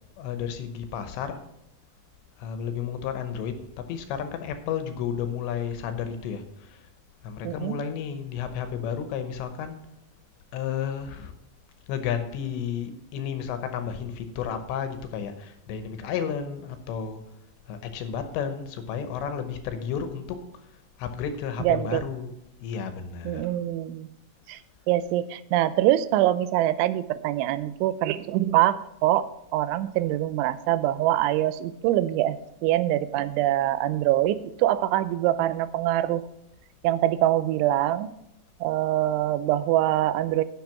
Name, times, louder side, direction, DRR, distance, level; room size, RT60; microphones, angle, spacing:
voice 1, 0.2-1.4 2.4-3.6 3.9-6.8 7.2-9.8 10.5-11.3 11.9-17.2 17.7-20.4 21.0-22.4 22.6-23.4, left 7 dB, 75° left, 9 dB, 3.1 m, -32 dB
voice 2, 7.4-7.8 21.6-22.0 23.3-24.1 24.5-24.6 24.9-36.2 36.8-38.1 38.6-40.4, right 14 dB, 90° right, 14 dB, 3.0 m, -24 dB
10.5 x 6.8 x 5.9 m, 0.81 s
omnidirectional pair, 5.4 m